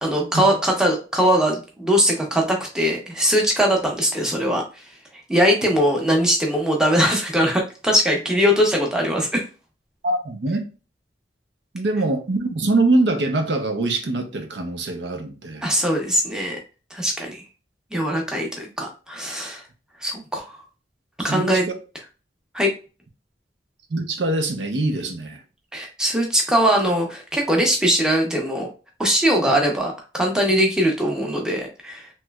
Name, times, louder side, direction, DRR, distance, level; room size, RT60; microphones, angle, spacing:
voice 1, 0.0-4.8 5.3-9.4 15.6-16.6 16.9-17.4 17.9-19.6 20.0-20.4 21.2-21.7 22.5-22.7 25.7-28.7 29.0-32.1, equal, 5° right, 0.7 m, -21 dB
voice 2, 10.0-10.6 11.7-15.7 21.3-21.7 23.9-25.4, right 2 dB, 75° right, 0.6 m, -23 dB
3.1 x 3.0 x 2.2 m
head